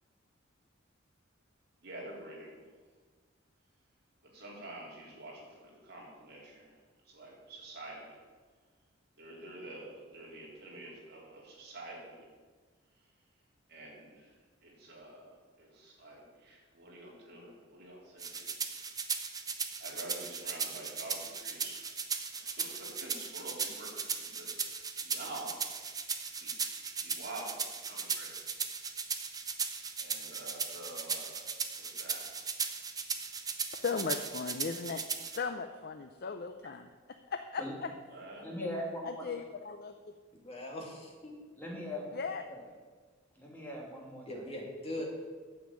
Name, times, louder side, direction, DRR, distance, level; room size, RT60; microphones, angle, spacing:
voice 1, 1.8-2.6 4.2-6.8 7.0-8.2 9.2-12.3 13.7-14.4 14.6-18.5 19.8-21.9 22.3-25.7 26.4-26.5 27.0-28.4 30.0-31.4 31.7-32.6 38.1-38.5, right 2 dB, 55° right, -4 dB, 3.6 m, -48 dB
sound 1, 18.2-35.4, right 5 dB, 20° right, 0.8 m, -37 dB
voice 2, 33.8-36.9 37.3-37.6 38.6-38.7 39.0-40.1 42.1-42.4, left 5 dB, 50° left, 7 dB, 0.5 m, -37 dB
voice 3, 38.4-39.2 41.6-42.2 42.5-42.6 43.3-44.3, equal, 10° left, -3 dB, 2.7 m, -40 dB
voice 4, 40.3-41.4 44.2-45.1, left 1 dB, 30° left, -1 dB, 2.5 m, -41 dB
9.4 x 7.3 x 8.5 m, 1.5 s
head